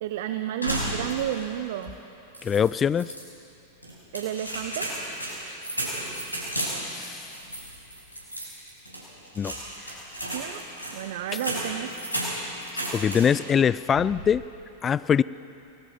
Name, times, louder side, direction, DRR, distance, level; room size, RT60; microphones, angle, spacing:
voice 1, 0.0-2.0 4.1-4.9 10.3-10.6 10.9-11.9, right 11 dB, 55° right, 8 dB, 0.9 m, -31 dB
sound 1, 0.6-1.5 1.8-1.9 2.3-3.2 3.8-13.5 13.9-14.4, right 1 dB, 85° left, 5.4 m, -33 dB
voice 2, 2.4-3.1 6.9-7.3 9.4-9.5 9.9-10.0 12.9-14.4 14.8-15.2, left 7 dB, 20° left, 19 dB, 0.4 m, -23 dB
28.5 x 20.0 x 5.2 m, 2.7 s
figure-of-eight pair, 90°, 0 cm